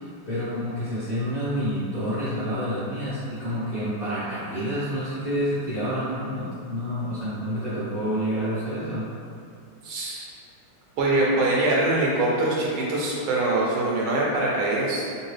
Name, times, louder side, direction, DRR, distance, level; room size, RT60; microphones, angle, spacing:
voice 1, 0.0-9.1, equal, 35° left, -14 dB, 1.0 m, -28 dB
voice 2, 9.8-10.3 11.0-15.0, right 2 dB, 75° right, -4 dB, 1.4 m, -23 dB
3.6 x 2.7 x 3.2 m, 2.4 s
omnidirectional pair, 2.4 m